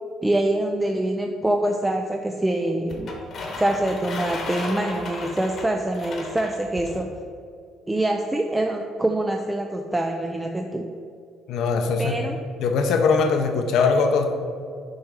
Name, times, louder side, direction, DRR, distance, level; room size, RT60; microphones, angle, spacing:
voice 1, 0.2-3.1 3.6-7.1 7.9-10.9 12.0-12.4, right 1 dB, 10° right, 3 dB, 0.3 m, -25 dB
sound 1, 2.9-7.0, left 2 dB, 45° left, 1.1 m, -35 dB
voice 2, 11.5-12.1 12.6-14.3, left 4 dB, 70° left, 4 dB, 0.7 m, -21 dB
6.2 x 3.4 x 4.8 m, 2.3 s
cardioid pair, 130°, 0 cm